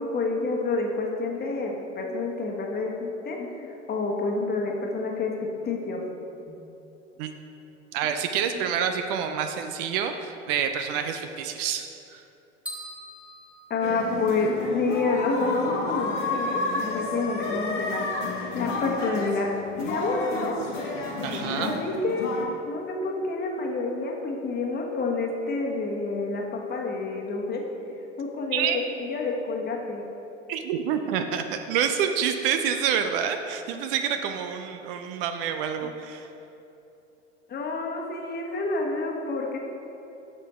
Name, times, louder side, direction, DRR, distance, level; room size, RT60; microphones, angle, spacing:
voice 1, 0.0-6.0 6.5-6.6 8.5-8.6 13.7-18.0 18.5-19.5 19.8-20.6 21.2-22.3 22.7-27.6 28.2-30.0 37.5-39.6, left 3 dB, 25° left, 0 dB, 1.3 m, -28 dB
voice 2, 7.9-12.2 21.2-21.7 28.5-28.8 30.5-36.3, right 8 dB, 50° right, 7 dB, 0.6 m, -28 dB
sound 1, 12.7-14.6, equal, 5° right, 1.6 m, -42 dB
sound 2, 13.8-22.4, left 3 dB, 75° left, 1.4 m, -31 dB
8.6 x 6.5 x 4.3 m, 2.9 s
figure-of-eight pair, 80°, 37 cm